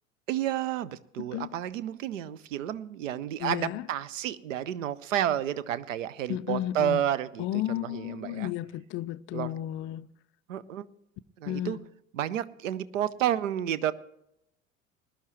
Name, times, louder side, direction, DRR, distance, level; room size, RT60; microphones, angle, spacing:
voice 1, 0.3-8.5 9.3-9.5 10.5-10.9 11.4-11.8 12.1-13.9, right 11 dB, 70° right, 0.7 m, -31 dB
voice 2, 3.4-3.9 6.3-7.0 7.4-10.1 11.5-11.8, left 13 dB, 30° left, 0.4 m, -33 dB
20.5 x 11.5 x 3.1 m
figure-of-eight pair, 70°, 40 cm